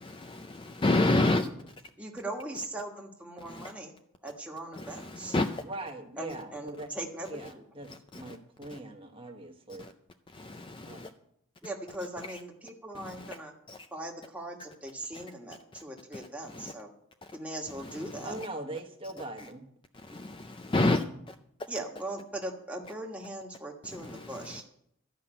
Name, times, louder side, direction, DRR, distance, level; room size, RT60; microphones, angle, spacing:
voice 1, 0.0-1.5 5.3-5.6 10.4-11.1 20.2-21.0, left 2 dB, 25° left, 8 dB, 0.4 m, -27 dB
voice 2, 2.0-3.9 4.2-5.4 6.2-7.6 11.6-13.5 13.9-16.9 17.3-18.3 20.1-20.2 21.7-24.6, right 1 dB, 5° right, 0 dB, 1.4 m, -40 dB
voice 3, 5.6-6.9 7.3-7.9 8.1-9.9 10.9-11.1 18.2-19.6 23.2-23.3, right 2 dB, 25° right, 4 dB, 1.2 m, -41 dB
12.5 x 5.7 x 8.7 m, 0.74 s
head